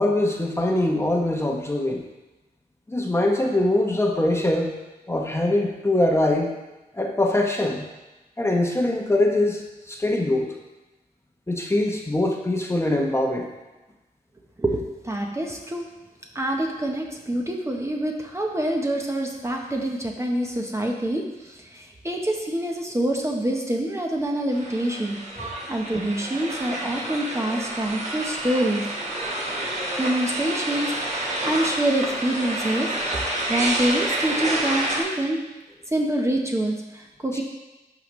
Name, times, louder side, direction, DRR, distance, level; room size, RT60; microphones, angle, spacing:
voice 1, 0.0-2.0 2.9-4.7 5.1-6.6 6.9-7.9 8.4-10.5 11.5-13.5 25.4-25.5, left 1 dB, 15° left, 1 dB, 0.9 m, -23 dB
voice 2, 14.6-15.9 16.3-25.2 25.7-28.8 30.0-35.4 35.9-37.4, right 1 dB, 15° right, 1 dB, 0.8 m, -26 dB
sound 1, 24.5-35.0, right 1 dB, 45° right, 1.4 m, -29 dB
11.0 x 5.0 x 3.1 m, 1.1 s
wide cardioid pair, 115°, 16 cm